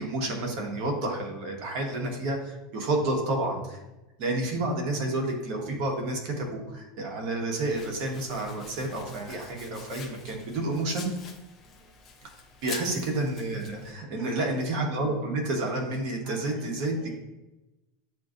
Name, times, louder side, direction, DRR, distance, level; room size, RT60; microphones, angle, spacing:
voice 1, 0.0-3.8 4.2-11.1 12.2-12.3 12.6-16.9, right 2 dB, 50° right, 1 dB, 1.0 m, -30 dB
Domestic sounds home sounds, 7.5-13.9, left 5 dB, 20° left, 0.5 m, -46 dB
voice 2, 11.6-11.9 12.7-12.9 14.1-14.5 16.2-16.7 16.9-17.3, left 1 dB, 5° right, -9 dB, 1.2 m, -48 dB
7.5 x 2.6 x 2.5 m, 1.0 s
supercardioid pair, 170°, 0 cm